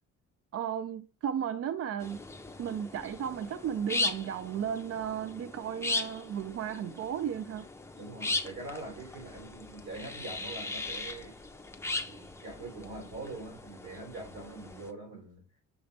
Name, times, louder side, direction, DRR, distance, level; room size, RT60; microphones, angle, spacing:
voice 1, 0.5-2.3 2.6-7.7, right 9 dB, 50° right, 0.5 m, -34 dB
sound 1, 2.0-14.9, left 3 dB, 10° left, 0.8 m, -38 dB
voice 2, 8.0-11.3 12.0-15.4, right 2 dB, 80° right, 3.5 m, -43 dB
6.9 x 3.3 x 4.1 m
cardioid pair, 90°, 30 cm